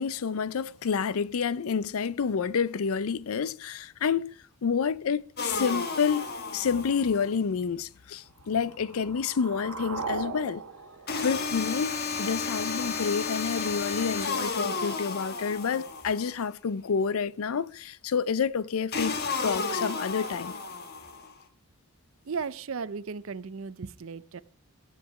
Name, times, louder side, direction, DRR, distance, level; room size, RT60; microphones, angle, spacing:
voice 1, 0.0-6.3 6.5-10.6 11.2-20.5, left 6 dB, 70° left, 0.5 m, -29 dB
sound 1, 5.4-7.3 11.1-16.3 18.9-21.3, left 4 dB, 45° left, 1.5 m, -32 dB
sound 2, 8.3-12.4, right 4 dB, 85° right, 1.5 m, -39 dB
voice 2, 22.3-24.4, right 5 dB, 60° right, 0.5 m, -35 dB
14.5 x 8.4 x 4.8 m
head